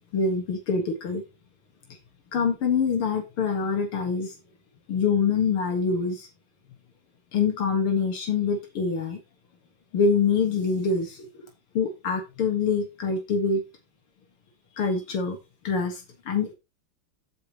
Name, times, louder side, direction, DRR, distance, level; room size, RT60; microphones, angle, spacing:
voice 1, 0.1-1.2 2.3-4.3 4.9-6.3 7.3-9.2 9.9-11.3 11.7-13.6 14.8-15.4 15.6-16.5, left 5 dB, 80° left, 3 dB, 2.6 m, -25 dB
14.5 x 5.1 x 3.1 m, 0.25 s
omnidirectional pair, 2.4 m